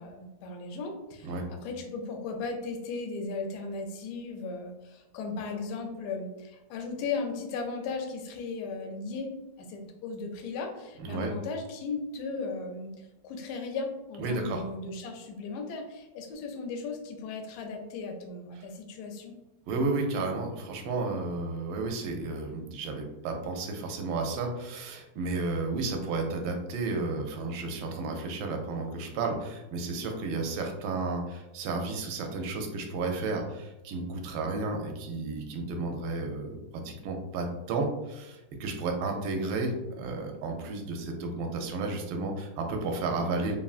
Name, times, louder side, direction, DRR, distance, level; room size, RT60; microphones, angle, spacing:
voice 1, 0.0-9.3 9.6-12.9 13.2-19.4, left 4 dB, 75° left, 3 dB, 1.0 m, -36 dB
voice 2, 11.0-11.3 14.2-14.6 18.5-18.6 19.7-43.6, right 3 dB, 75° right, 3 dB, 1.2 m, -32 dB
3.5 x 2.2 x 2.4 m, 0.97 s
omnidirectional pair, 2.1 m